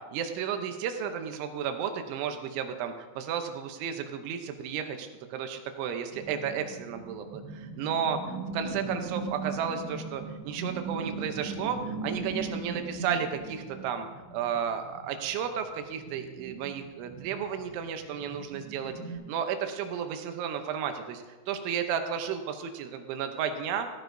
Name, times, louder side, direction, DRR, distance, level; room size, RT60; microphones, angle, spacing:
voice 1, 0.1-2.9 3.3-3.9 4.3-4.4 4.6-4.8 5.4-5.5 5.8-7.2 7.8-8.2 8.6-9.8 10.1-10.2 10.5-11.8 12.0-13.3 13.8-14.1 14.3-15.5 16.1-18.9 19.3-19.5 19.8-20.9 21.5-22.4 22.8-23.9, right 8 dB, 80° right, 6 dB, 3.1 m, -32 dB
sound 1, 6.1-19.2, right 4 dB, 65° right, 5.0 m, -39 dB
15.0 x 13.5 x 2.6 m, 1.3 s
omnidirectional pair, 5.5 m